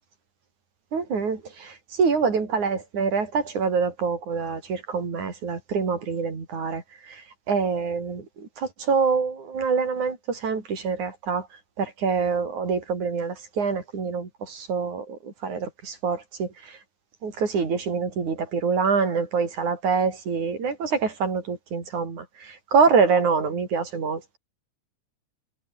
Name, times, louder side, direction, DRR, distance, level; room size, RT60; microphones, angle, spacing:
voice 1, 0.9-11.5 11.8-16.8 17.2-24.4, right 5 dB, 85° right, 6.0 m, -25 dB
omnidirectional pair, 3.3 m